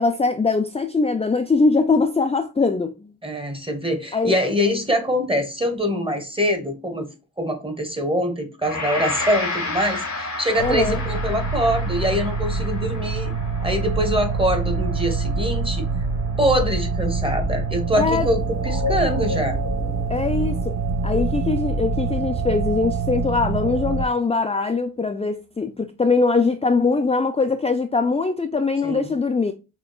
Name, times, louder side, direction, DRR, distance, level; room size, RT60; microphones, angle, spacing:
voice 1, 0.0-3.1 4.1-4.4 10.6-11.0 18.0-18.3 20.1-20.8 21.0-29.5, left 4 dB, 20° left, 0.3 m, -22 dB
voice 2, 3.2-7.1 7.4-13.3 13.6-15.9 16.4-19.6 28.8-29.1, equal, 15° right, 0.9 m, -24 dB
Gong, 8.6-17.8, left 3 dB, 60° left, 0.9 m, -32 dB
sound 1, 10.6-24.1, right 4 dB, 60° right, 0.5 m, -25 dB
sound 2, 17.9-20.8, left 5 dB, 75° left, 1.2 m, -33 dB
5.9 x 2.3 x 2.3 m
wide cardioid pair, 60°, 32 cm